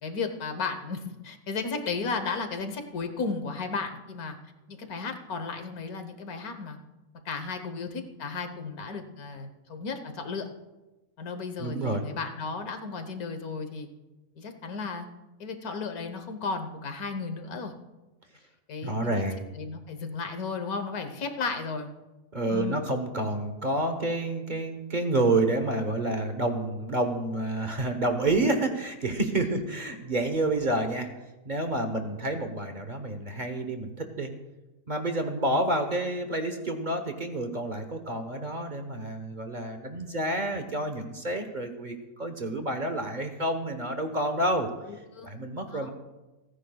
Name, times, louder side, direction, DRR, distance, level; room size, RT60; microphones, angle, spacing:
voice 1, 0.0-4.4 4.7-6.8 7.2-10.5 11.2-13.9 14.4-15.1 15.4-17.7 18.7-21.9 22.5-22.8 29.4-29.6 44.9-45.3 45.7-45.9, left 4 dB, 85° left, 7 dB, 1.6 m, -34 dB
voice 2, 11.6-12.0 18.8-19.5 22.3-31.1 31.4-34.3 34.9-44.7 45.2-45.9, right 2 dB, 35° right, 6 dB, 1.1 m, -29 dB
29.0 x 9.8 x 2.3 m, 1.1 s
omnidirectional pair, 1.5 m